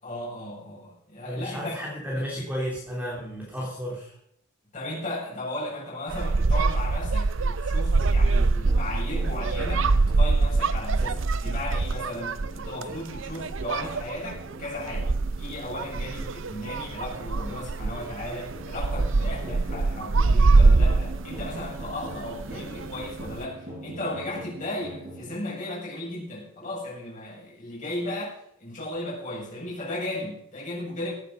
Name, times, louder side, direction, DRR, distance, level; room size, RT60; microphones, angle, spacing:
voice 1, 0.0-1.9 2.2-2.3 4.7-15.1 15.4-31.1, left 1 dB, 35° left, -5 dB, 7.6 m, -35 dB
voice 2, 1.2-4.1 19.2-19.3, equal, 5° right, -5 dB, 3.4 m, -33 dB
sound 1, 6.1-23.4, right 3 dB, 60° right, 0.6 m, -24 dB
sound 2, 8.6-25.4, right 1 dB, 40° right, 5.5 m, -43 dB
17.5 x 9.6 x 5.5 m, 0.72 s
head